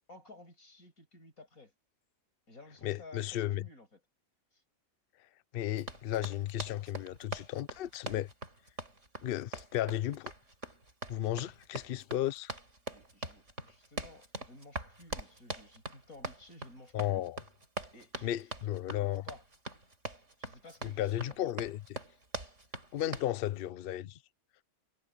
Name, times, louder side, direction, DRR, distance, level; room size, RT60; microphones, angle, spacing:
voice 1, 0.0-1.7 2.5-4.0 12.9-17.2 17.9-18.3 19.0-19.4 20.4-21.4, left 2 dB, 80° left, 8.1 m, -54 dB
voice 2, 2.8-3.6 5.5-8.3 9.2-10.3 11.1-12.5 16.9-17.4 18.2-19.2 20.8-22.0 22.9-24.2, left 12 dB, 55° left, 0.6 m, -34 dB
Run, 5.8-23.3, right 2 dB, 55° right, 5.8 m, -43 dB
omnidirectional pair, 1.5 m